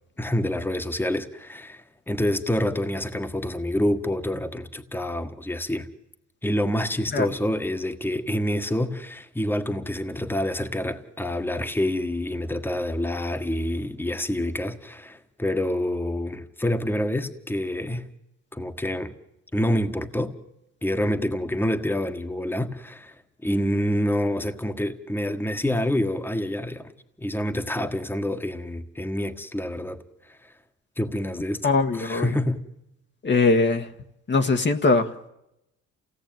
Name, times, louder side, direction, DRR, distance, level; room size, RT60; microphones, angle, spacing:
voice 1, 0.2-5.9 6.4-18.1 18.5-19.1 19.5-20.4 20.8-23.1 23.4-26.9 27.2-30.0 30.3-30.5 31.0-31.7 32.0-32.6, left 1 dB, 5° left, 1.6 m, -27 dB
voice 2, 31.6-32.4 33.2-33.9 34.3-35.3, left 3 dB, 35° left, 1.5 m, -21 dB
28.0 x 17.5 x 9.2 m
cardioid pair, 90°, 30 cm